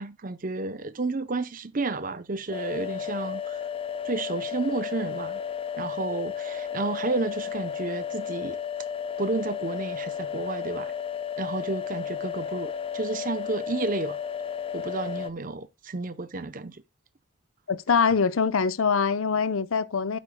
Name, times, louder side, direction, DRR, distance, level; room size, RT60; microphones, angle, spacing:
voice 1, 0.0-3.6 4.0-5.4 5.8-8.6 9.2-10.9 11.4-14.2 14.7-16.8, right 3 dB, 40° right, 0.7 m, -31 dB
sound 1, 2.5-15.3, left 8 dB, 25° left, 0.5 m, -33 dB
voice 2, 17.7-20.2, left 5 dB, 75° left, 0.7 m, -24 dB
11.5 x 8.6 x 2.2 m
head